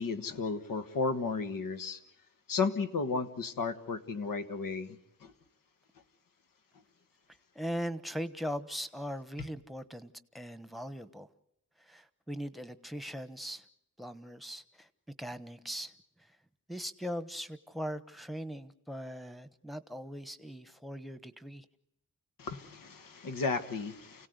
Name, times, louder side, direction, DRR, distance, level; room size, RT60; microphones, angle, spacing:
voice 1, 0.0-2.0 2.5-5.3 22.4-24.3, left 4 dB, 85° left, 9 dB, 1.6 m, -34 dB
voice 2, 7.5-11.3 11.8-13.7 14.0-14.9 15.2-15.9 16.3-16.4 16.7-21.6, equal, ahead, 12 dB, 1.1 m, -40 dB
29.5 x 17.5 x 8.1 m, 0.83 s
wide cardioid pair, 115°, 32 cm